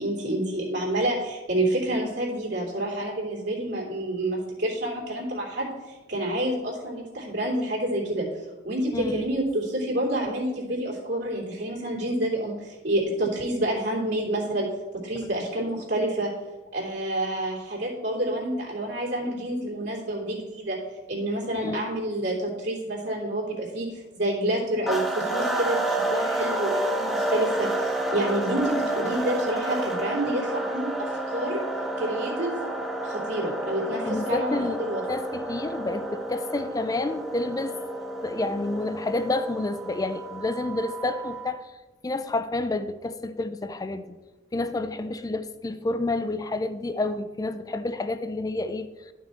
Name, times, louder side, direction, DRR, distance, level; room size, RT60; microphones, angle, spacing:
voice 1, 0.0-8.3 8.6-14.7 14.9-16.3 16.7-20.8 21.1-31.6 32.0-32.7 33.0-35.0, right 1 dB, 65° right, 3.0 m, -28 dB
voice 2, 8.9-9.3 21.6-21.8 34.1-34.8 35.1-37.7 38.2-41.6 42.0-44.2 44.5-48.9, left 2 dB, 20° left, 0.4 m, -29 dB
sound 1, 24.9-41.5, right 1 dB, ahead, 1.2 m, -30 dB
11.5 x 6.0 x 4.2 m
head